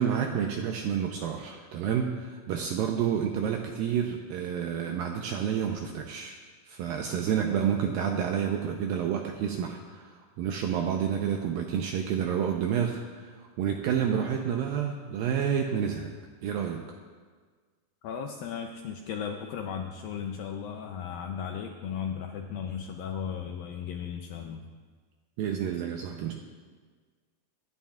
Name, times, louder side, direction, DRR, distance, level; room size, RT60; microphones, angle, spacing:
voice 1, 0.0-6.4 6.7-16.1 16.4-16.8 25.4-26.3, right 8 dB, 85° right, 2 dB, 2.1 m, -29 dB
voice 2, 18.0-24.6, left 7 dB, 85° left, 3 dB, 2.0 m, -36 dB
25.0 x 11.5 x 2.4 m, 1.5 s
omnidirectional pair, 4.8 m